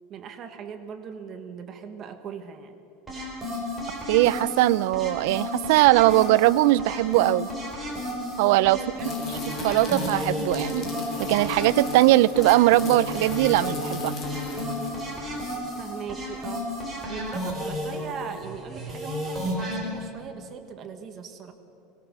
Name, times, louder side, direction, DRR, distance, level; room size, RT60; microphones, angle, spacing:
voice 1, 0.1-2.7 8.7-9.1 15.8-16.7 17.1-21.5, right 6 dB, 30° right, 7 dB, 1.3 m, -39 dB
sound 1, 3.1-19.8, left 1 dB, 5° right, 4.3 m, -33 dB
voice 2, 4.1-7.5 8.4-8.8 9.6-10.9 11.3-14.1, right 17 dB, 65° right, 18 dB, 0.5 m, -20 dB
sound 2, 9.0-15.4, left 2 dB, 30° left, 3.2 m, -34 dB
23.5 x 19.5 x 6.7 m, 2.8 s
supercardioid pair, 165°, 0 cm